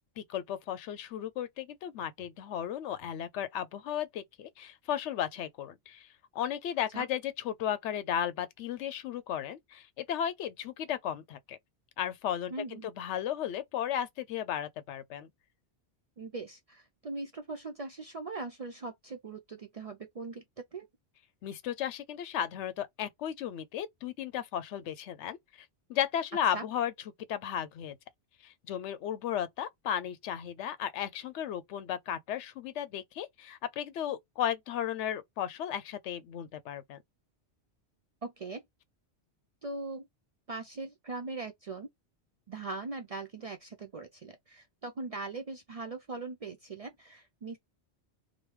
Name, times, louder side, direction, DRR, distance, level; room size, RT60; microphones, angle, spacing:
voice 1, 0.3-6.1 6.3-11.6 12.0-15.3 21.4-26.9 27.3-28.0 28.4-37.0, left 10 dB, 80° left, 0.9 m, -35 dB
voice 2, 12.5-12.9 16.2-20.4 20.7-20.9 26.5-26.6 38.2-38.6 39.6-40.1 40.5-41.9 42.5-47.6, right 3 dB, 55° right, 0.4 m, -40 dB
3.1 x 2.1 x 3.1 m
omnidirectional pair, 1.2 m